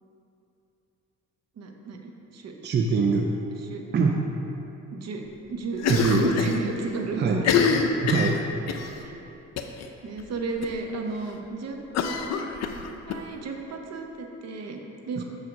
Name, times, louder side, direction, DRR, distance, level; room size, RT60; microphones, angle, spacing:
voice 1, 1.6-2.5 3.6-3.8 4.9-5.2 5.5-7.5 9.0-9.2 10.0-11.8 12.3-12.5 13.1-15.2, right 3 dB, 60° right, 3 dB, 0.9 m, -33 dB
voice 2, 2.6-3.3 3.9-4.2 5.9-6.3 7.2-7.4 8.0-8.4 15.2-15.3, right 4 dB, 35° right, 2 dB, 0.5 m, -23 dB
Cough, 5.8-6.6 6.9-7.0 7.4-8.9 9.6-9.9 10.2-10.3 10.6-10.7 11.9-13.2, left 6 dB, 60° left, 0.6 m, -25 dB
6.4 x 4.8 x 5.2 m, 2.9 s
cardioid pair, 90°, 30 cm